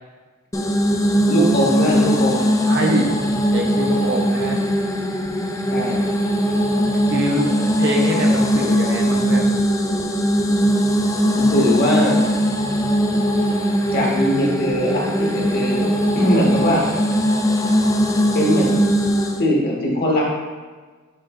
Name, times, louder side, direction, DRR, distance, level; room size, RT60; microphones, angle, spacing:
sound 1, 0.5-19.4, equal, 15° left, 0.4 m, -20 dB
voice 1, 1.3-2.5 5.7-6.1 11.3-12.2 13.9-16.8 18.3-18.8 19.4-20.2, equal, 50° left, -3 dB, 1.4 m, -20 dB
voice 2, 2.7-3.1 3.5-4.6 7.1-9.5, right 1 dB, 55° right, 0 dB, 0.9 m, -24 dB
7.5 x 3.5 x 3.7 m, 1.4 s
head